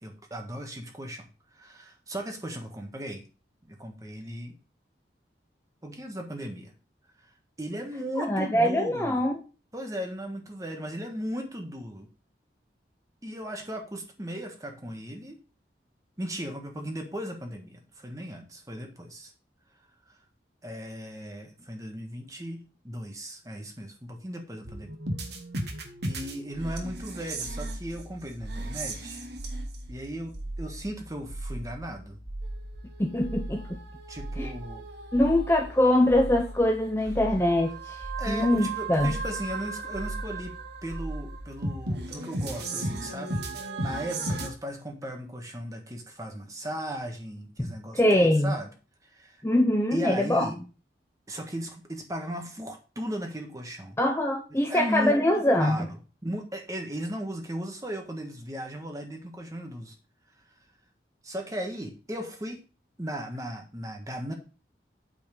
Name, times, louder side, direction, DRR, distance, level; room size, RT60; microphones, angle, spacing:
voice 1, 0.0-3.2 3.6-4.5 5.8-6.7 7.2-7.3 7.6-9.2 9.7-12.1 13.2-15.4 16.2-19.3 20.0-20.1 20.6-25.0 26.0-29.2 29.9-32.2 34.1-34.8 38.2-40.5 40.8-48.7 49.0-49.4 49.9-50.6 51.3-54.0 54.5-56.0 56.2-60.0 61.2-62.6 63.0-64.3, equal, 20° right, 3 dB, 1.5 m, -37 dB
voice 2, 8.2-9.4 33.0-33.8 34.4-34.5 35.1-39.1 47.6-48.5 49.4-50.5 54.0-55.9, left 1 dB, 15° left, 3 dB, 0.7 m, -23 dB
sound 1, 24.7-44.5, right 2 dB, 70° right, 1.6 m, -36 dB
8.9 x 4.3 x 5.3 m, 0.35 s
head